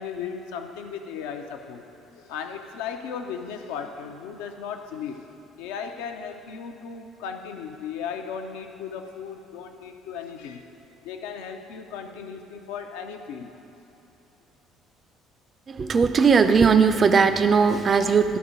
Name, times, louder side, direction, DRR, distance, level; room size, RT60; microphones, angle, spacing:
voice 1, 0.0-1.8 2.1-5.3 5.6-10.7 11.0-13.5, left 7 dB, 65° left, 6 dB, 0.5 m, -36 dB
voice 2, 15.7-18.4, right 5 dB, 35° right, 9 dB, 0.4 m, -18 dB
12.0 x 4.2 x 5.0 m, 3.0 s
figure-of-eight pair, 50°, 0 cm